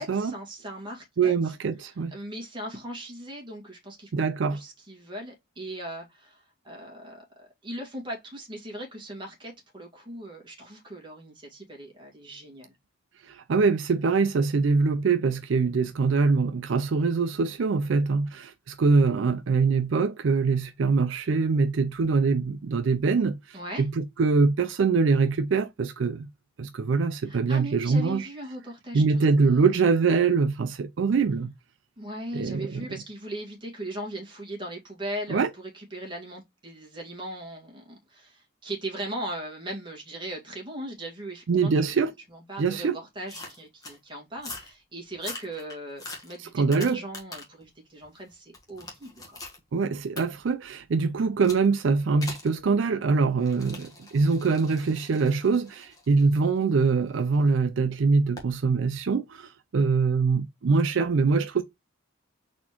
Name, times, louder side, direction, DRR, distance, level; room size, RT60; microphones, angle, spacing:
voice 1, 0.0-1.5 2.1-4.1 4.5-12.7 23.5-23.9 27.2-29.8 32.0-41.8 42.3-49.4, right 1 dB, 25° right, 1.8 m, -39 dB
voice 2, 1.2-2.1 4.1-4.6 13.3-26.3 26.6-28.3 28.9-31.5 32.3-32.9 35.3-35.5 41.5-42.1 42.6-43.0 46.5-47.0 49.7-61.6, right 4 dB, 65° right, 0.4 m, -23 dB
sound 1, 43.3-44.0 44.4-44.7 45.1-47.6 48.0-49.6 50.2-50.3 51.4-51.7 52.2-52.5 53.4-57.4 58.4-58.5, left 2 dB, 15° left, 1.3 m, -42 dB
4.2 x 3.4 x 2.9 m
head